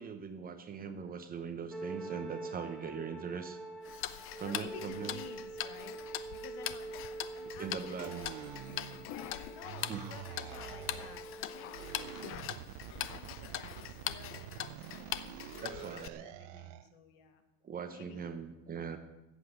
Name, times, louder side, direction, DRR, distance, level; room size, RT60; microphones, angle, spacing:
voice 1, 0.0-3.6 4.4-5.2 7.4-8.2 9.9-10.0 15.6-16.3 17.6-19.0, right 6 dB, 20° right, 9 dB, 0.9 m, -41 dB
sound 1, 1.7-12.3, right 3 dB, ahead, 1.4 m, -46 dB
Tick-tock, 3.8-16.1, left 12 dB, 35° left, 0.6 m, -42 dB
voice 2, 4.4-8.3 9.1-12.6 13.1-17.4 17.9-18.3, left 7 dB, 70° left, 7 dB, 2.1 m, -52 dB
sound 2, 8.0-9.3 9.6-11.3 11.7-16.9, right 16 dB, 70° right, 0.6 m, -47 dB
14.0 x 8.2 x 8.1 m, 1.0 s
cardioid pair, 165°, 40 cm